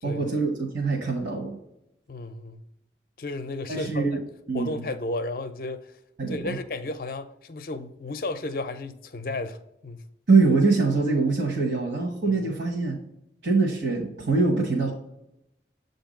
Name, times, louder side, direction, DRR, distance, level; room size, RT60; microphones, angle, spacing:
voice 1, 0.0-1.6 3.7-4.2 4.5-4.8 6.2-6.6 10.3-13.0 13.4-14.9, right 3 dB, 75° right, 1.0 m, -23 dB
voice 2, 2.1-2.6 3.2-4.2 4.5-5.9 6.3-10.0 12.2-12.5, left 2 dB, 50° left, 0.4 m, -33 dB
7.8 x 2.6 x 5.1 m
head